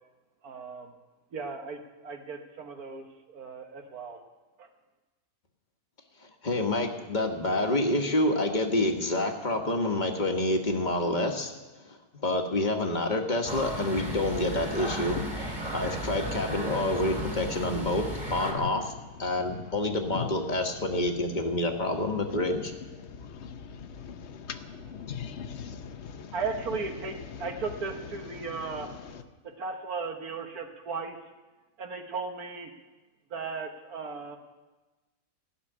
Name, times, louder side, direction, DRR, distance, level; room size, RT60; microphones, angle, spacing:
voice 1, 0.4-0.9 1.3-4.2 4.6-4.7 26.3-28.9 29.4-31.2 31.8-32.7 33.3-34.4, right 4 dB, 70° right, 4 dB, 1.5 m, -36 dB
voice 2, 6.4-11.5 11.8-18.9 19.2-22.7, left 1 dB, 30° left, 3 dB, 1.4 m, -28 dB
sound 1, 13.5-18.5, right 1 dB, 30° right, 2.3 m, -35 dB
voice 3, 23.1-26.3, left 8 dB, 50° left, 9 dB, 1.0 m, -39 dB
16.0 x 6.7 x 9.8 m, 1.2 s
omnidirectional pair, 1.6 m